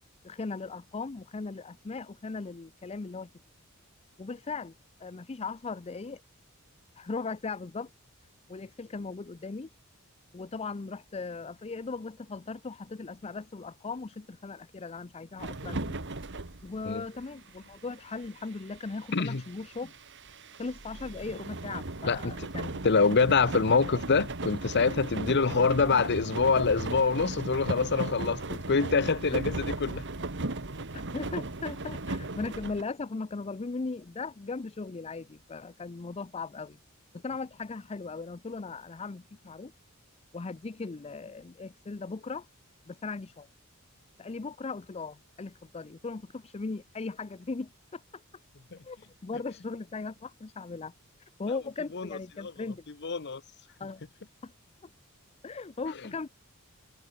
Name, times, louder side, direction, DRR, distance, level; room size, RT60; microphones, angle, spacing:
voice 1, 0.2-3.3 4.2-4.7 5.0-6.2 7.0-7.9 8.5-9.7 10.3-16.0 16.6-19.9 20.6-22.9 30.9-36.8 37.1-39.7 40.3-42.5 42.9-43.5 44.2-48.2 48.8-50.9 51.4-52.8 53.8-54.0 54.4-54.5 54.8-54.9 55.4-56.3, left 4 dB, 30° left, 0.5 m, -38 dB
sound 1, 15.4-17.3 17.6-32.8, right 2 dB, 60° right, 1.9 m, -37 dB
voice 2, 19.1-19.4 22.1-22.3 22.8-30.0 51.9-52.1 52.4-52.5 53.0-53.4, left 4 dB, 55° left, 0.9 m, -25 dB
head